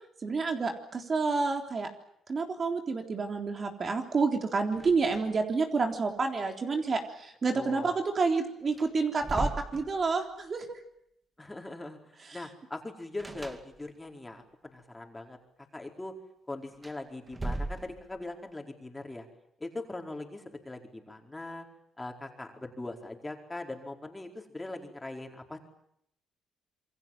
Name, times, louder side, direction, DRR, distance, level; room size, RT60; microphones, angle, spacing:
voice 1, 0.2-1.9 2.3-10.8 12.3-12.4, right 4 dB, 40° right, 4 dB, 3.6 m, -29 dB
sound 1, 4.7-5.6 5.8-5.9 8.2-8.3 8.7-10.4 13.2-14.2 16.7-18.3, right 2 dB, 20° right, 2.4 m, -38 dB
voice 2, 7.5-8.0 11.4-15.4 15.7-16.1 16.5-19.3 19.6-21.7 22.0-25.6, left 2 dB, 15° left, 3 dB, 4.7 m, -41 dB
27.5 x 23.0 x 7.6 m, 0.74 s
cardioid pair, 90°, 0 cm